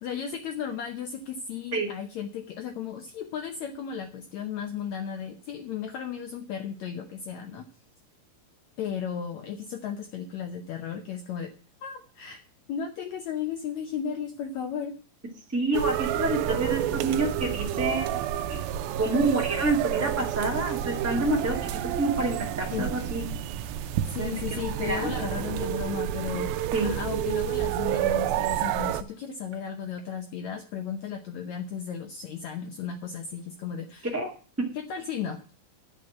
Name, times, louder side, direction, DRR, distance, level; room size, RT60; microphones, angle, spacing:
voice 1, 0.0-7.7 8.8-11.5 11.8-12.4 12.7-14.9 22.7-22.9 24.1-26.5 26.8-34.1 34.7-35.4, left 8 dB, 85° left, 5 dB, 1.6 m, -35 dB
voice 2, 15.5-18.6 19.0-21.6 22.0-23.2 24.2-25.1 26.7-26.9 34.0-34.3, right 2 dB, 5° right, -2 dB, 1.3 m, -28 dB
sound 1, 15.7-29.0, right 11 dB, 80° right, 2.4 m, -29 dB
11.0 x 5.1 x 8.6 m, 0.39 s
omnidirectional pair, 4.4 m